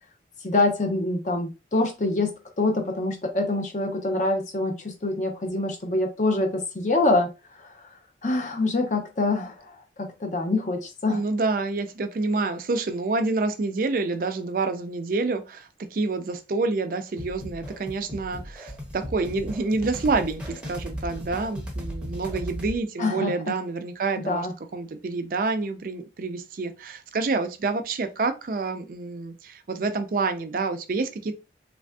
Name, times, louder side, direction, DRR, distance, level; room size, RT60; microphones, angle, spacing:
voice 1, 0.4-2.3 2.6-7.8 8.2-11.2 23.0-23.3 24.2-24.5, left 2 dB, 45° left, 0.6 m, -25 dB
voice 2, 11.1-24.5 24.7-31.3, right 3 dB, 50° right, 0.4 m, -28 dB
sound 1, 17.2-22.8, equal, 5° right, 0.6 m, -36 dB
3.3 x 2.5 x 2.2 m
head